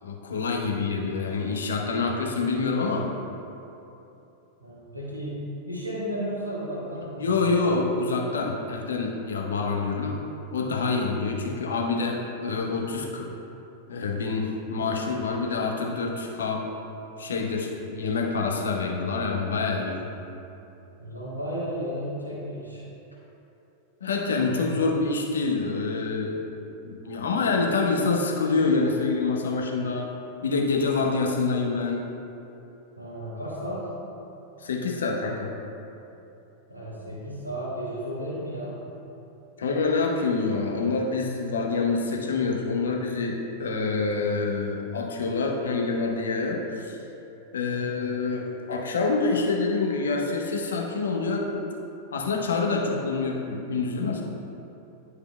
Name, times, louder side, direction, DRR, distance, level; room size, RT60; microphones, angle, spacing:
voice 1, 0.0-3.1 7.2-10.2 10.5-13.4 13.9-16.7 17.2-20.0 24.0-26.4 26.8-30.1 30.4-32.1 34.6-35.5 39.6-47.0 47.5-51.5 52.1-54.2, left 4 dB, 65° left, 0 dB, 0.8 m, -26 dB
voice 2, 0.6-1.0 4.6-7.7 14.7-15.1 21.0-22.8 24.5-25.0 33.0-33.9 36.7-38.8 47.7-48.1, equal, 90° right, -8 dB, 1.4 m, -34 dB
11.0 x 4.8 x 2.2 m, 2.9 s
figure-of-eight pair, 90°, 0 cm